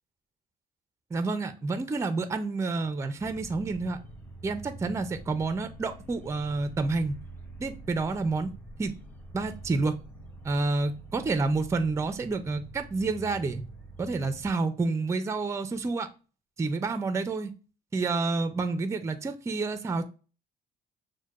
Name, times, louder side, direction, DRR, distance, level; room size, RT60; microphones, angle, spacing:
voice 1, 1.1-4.0 4.4-7.2 7.6-8.5 8.8-8.9 9.3-10.0 10.4-13.6 14.0-16.1 16.6-17.5 17.9-20.0, right 3 dB, 15° right, 9 dB, 0.4 m, -29 dB
sound 1, 3.2-14.5, right 2 dB, 10° left, 0.9 m, -46 dB
6.2 x 2.1 x 2.4 m, 0.33 s
cardioid pair, 110°, 17 cm